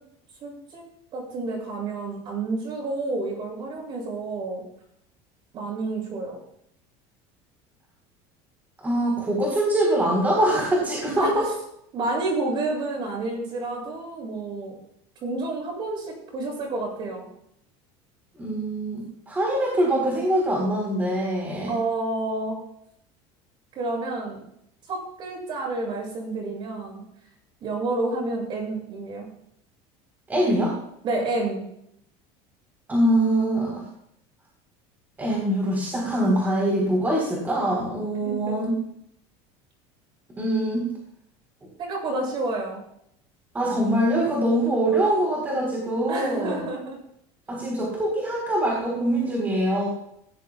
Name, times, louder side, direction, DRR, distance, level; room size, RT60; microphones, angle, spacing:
voice 1, 0.4-0.8 1.1-4.6 5.5-6.4 11.2-11.5 11.9-14.7 15.2-17.3 21.7-22.6 23.7-24.4 24.9-27.0 27.6-29.3 31.0-31.7 38.2-38.7 41.8-42.8 46.1-47.0, right 2 dB, 35° right, 0 dB, 7.4 m, -29 dB
voice 2, 8.8-11.5 18.3-19.0 19.3-21.7 30.3-30.7 32.9-33.8 35.2-38.8 40.4-40.9 43.5-46.6 47.5-49.9, right 1 dB, 15° right, -3 dB, 3.9 m, -23 dB
19.0 x 17.5 x 2.4 m, 0.71 s
cardioid pair, 165°, 14 cm